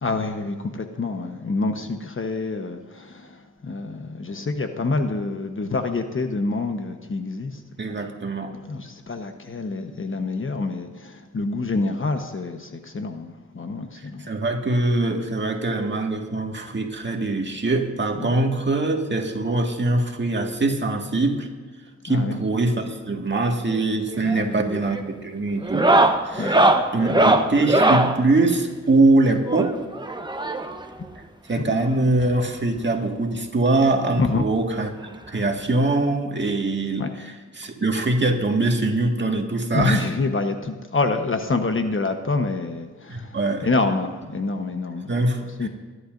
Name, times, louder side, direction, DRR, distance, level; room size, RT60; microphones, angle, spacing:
voice 1, 0.0-7.5 8.7-14.3 18.2-18.3 22.1-22.4 24.2-24.7 26.4-26.7 34.2-34.5 37.0-37.1 39.7-43.4 43.6-45.1 45.6-45.7, left 3 dB, 45° left, 6 dB, 1.1 m, -27 dB
voice 2, 7.8-8.6 14.0-21.5 22.0-25.9 26.2-26.7 26.9-29.8 31.5-34.9 35.3-40.1 43.1-43.7 45.1-45.7, right 2 dB, 40° right, 2 dB, 1.9 m, -23 dB
sound 1, 24.1-24.4 24.7-25.1 25.6-28.1 29.5-30.8 31.9-32.0 32.2-32.3 32.8-32.9 34.2-34.3 35.6-35.7, right 2 dB, 15° right, 1.0 m, -20 dB
23.0 x 11.5 x 2.6 m, 1.4 s
cardioid pair, 65°, 29 cm